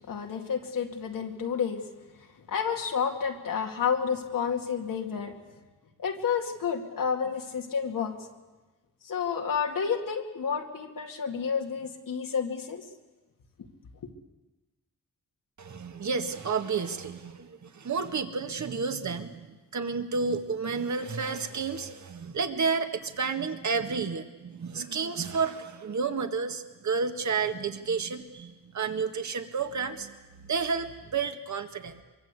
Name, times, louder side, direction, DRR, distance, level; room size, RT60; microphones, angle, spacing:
voice 1, 0.1-1.8 2.5-5.3 6.0-8.2 9.0-12.8, left 6 dB, 90° left, 2 dB, 2.3 m, -30 dB
voice 2, 15.6-32.0, right 5 dB, 60° right, 7 dB, 1.9 m, -31 dB
24.0 x 23.0 x 8.4 m, 1.2 s
cardioid pair, 90°, 32 cm